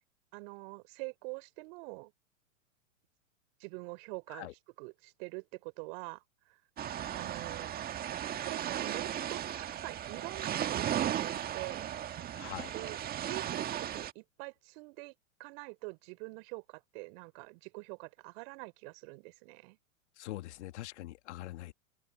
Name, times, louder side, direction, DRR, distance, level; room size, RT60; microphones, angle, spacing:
voice 1, 0.3-2.1 3.6-4.5 4.8-6.6 7.1-7.8 8.4-11.9 12.7-19.8, right 32 dB, 45° right, 3.7 m, -45 dB
sound 1, 6.8-14.1, right 10 dB, 20° right, 1.7 m, -36 dB
voice 2, 12.3-12.7 20.2-21.7, left 16 dB, 55° left, 2.2 m, -43 dB
hypercardioid pair, 110°, 40 cm